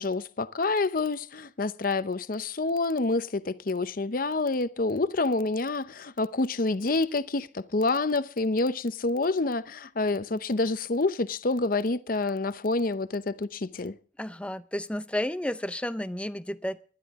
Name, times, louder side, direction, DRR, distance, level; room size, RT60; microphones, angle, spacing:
voice 1, 0.0-14.0, left 3 dB, 45° left, 0.7 m, -28 dB
voice 2, 14.2-16.8, left 1 dB, 5° left, 0.5 m, -32 dB
20.0 x 12.0 x 3.6 m
head